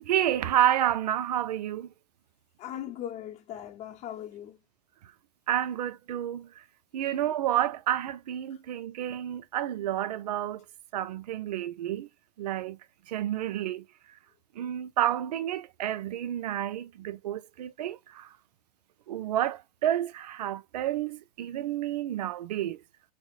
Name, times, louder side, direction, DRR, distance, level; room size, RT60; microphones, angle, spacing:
voice 1, 0.0-1.9 5.5-6.5 6.9-10.6 10.9-12.1 12.4-12.8 13.1-13.8 14.6-18.3 19.1-22.8, right 12 dB, 75° right, 0.5 m, -30 dB
voice 2, 2.6-4.6 8.5-8.6, left 11 dB, 30° left, 0.7 m, -39 dB
5.8 x 2.0 x 2.3 m
hypercardioid pair, 115°, 21 cm